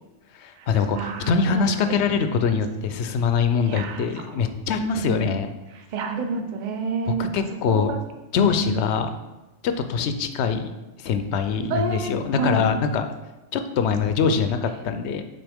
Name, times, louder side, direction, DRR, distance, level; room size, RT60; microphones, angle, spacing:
voice 1, 0.3-5.5 7.1-7.9 8.3-9.2 9.6-10.7 11.0-13.1 13.5-15.2, left 6 dB, 65° left, 8 dB, 0.8 m, -23 dB
voice 2, 0.9-1.9 2.3-2.6 3.7-4.4 5.0-5.4 5.9-7.3 7.7-8.0 8.5-8.8 11.7-12.7 14.2-14.3, right 4 dB, 45° right, 4 dB, 0.7 m, -29 dB
7.6 x 4.5 x 3.5 m, 1.0 s
omnidirectional pair, 1.3 m